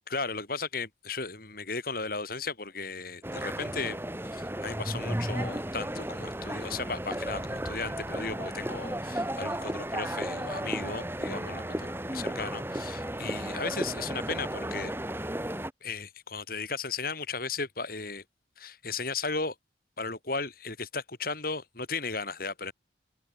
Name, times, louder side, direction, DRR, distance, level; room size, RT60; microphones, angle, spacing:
voice 1, 0.1-4.0 4.3-14.9 15.8-18.2 18.6-19.5 20.0-22.7, left 4 dB, 50° left, 4.4 m, -35 dB
sound 1, 3.2-15.7, right 1 dB, 10° right, 2.8 m, -34 dB
open air
head